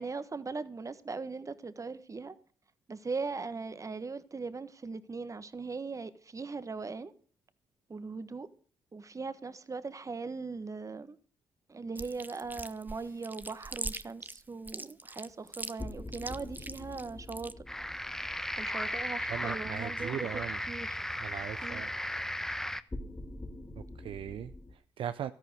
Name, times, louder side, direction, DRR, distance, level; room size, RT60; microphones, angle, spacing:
voice 1, 0.0-2.3 2.9-7.1 7.9-8.5 8.9-11.2 11.7-17.6 18.6-21.0 21.6-21.8, right 4 dB, 35° right, 1.4 m, -39 dB
Chewing mastication, 12.0-17.5, right 2 dB, 20° right, 0.8 m, -41 dB
sound 1, 12.4-13.0 15.8-20.1 22.9-24.7, left 2 dB, 25° left, 2.7 m, -45 dB
sound 2, 17.7-22.8, left 1 dB, 5° left, 0.9 m, -36 dB
voice 2, 19.3-20.6 21.2-21.9 23.8-25.3, right 10 dB, 65° right, 0.6 m, -39 dB
13.5 x 11.5 x 6.3 m
hypercardioid pair, 50°, 10 cm